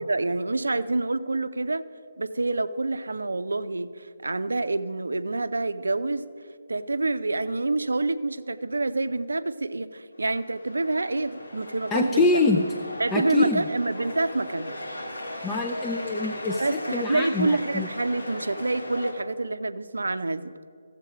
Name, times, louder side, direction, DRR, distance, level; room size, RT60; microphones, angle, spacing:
voice 1, 0.1-1.8 2.2-6.3 6.7-12.3 13.0-14.8 16.6-20.5, right 2 dB, 75° right, 12 dB, 0.5 m, -27 dB
sound 1, 10.2-19.1, left 1 dB, 85° left, 2.5 m, -38 dB
voice 2, 11.9-12.6 13.1-13.7 15.4-17.9, left 3 dB, 15° left, 1 dB, 0.5 m, -25 dB
15.0 x 7.4 x 4.9 m, 2.3 s
figure-of-eight pair, 145°, 0 cm